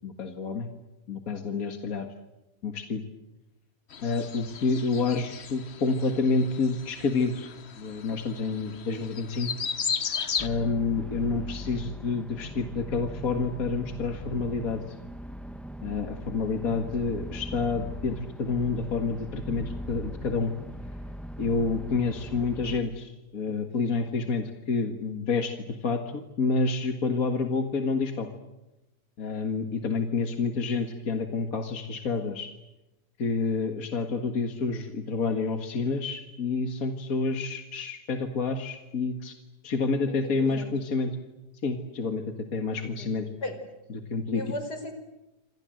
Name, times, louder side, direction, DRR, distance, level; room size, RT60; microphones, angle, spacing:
voice 1, 0.0-0.7 1.1-2.1 2.6-3.0 4.0-9.5 10.4-14.8 15.8-20.5 21.4-28.3 29.2-32.5 33.2-39.3 39.6-41.1 41.6-43.3 43.9-44.4, left 4 dB, 60° left, 6 dB, 2.2 m, -29 dB
sound 1, 3.9-10.5, left 6 dB, 45° left, 1.3 m, -35 dB
sound 2, 10.4-22.8, equal, ahead, 1.1 m, -40 dB
voice 2, 40.1-40.7 43.4-43.5 44.3-44.9, left 1 dB, 85° left, 8 dB, 5.3 m, -36 dB
28.0 x 27.0 x 7.8 m, 0.99 s
omnidirectional pair, 1.7 m